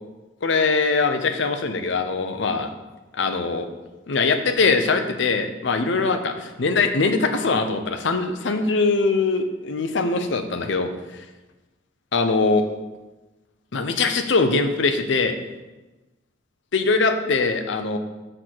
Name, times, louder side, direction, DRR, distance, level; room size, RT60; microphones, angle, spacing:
voice 1, 0.4-2.7 3.1-3.7 4.1-11.2 12.1-12.6 13.7-15.3 16.7-18.0, left 4 dB, 65° left, 6 dB, 0.6 m, -22 dB
6.5 x 3.8 x 6.1 m, 1.1 s
head